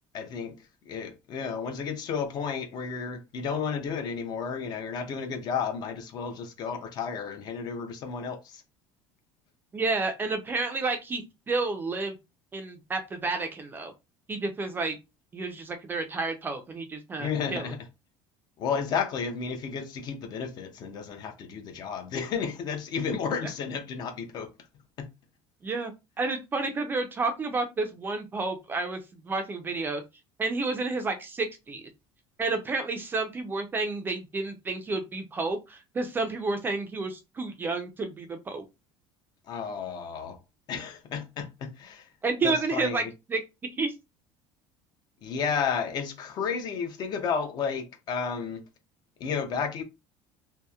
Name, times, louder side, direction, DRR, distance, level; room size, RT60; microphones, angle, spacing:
voice 1, 0.1-0.5 0.9-8.6 17.2-17.8 18.6-24.5 25.0-25.1 39.5-40.4 40.7-42.1 42.4-43.1 45.2-48.6 49.2-49.8, left 6 dB, 40° left, 0.4 m, -32 dB
voice 2, 9.7-12.2 12.5-13.9 14.3-15.0 15.3-17.7 23.3-23.4 25.6-25.9 26.2-30.0 30.4-31.8 32.4-38.6 42.2-43.4 43.8-43.9, right 3 dB, 20° right, 0.4 m, -30 dB
2.7 x 2.0 x 2.2 m
cardioid pair, 150°, 11 cm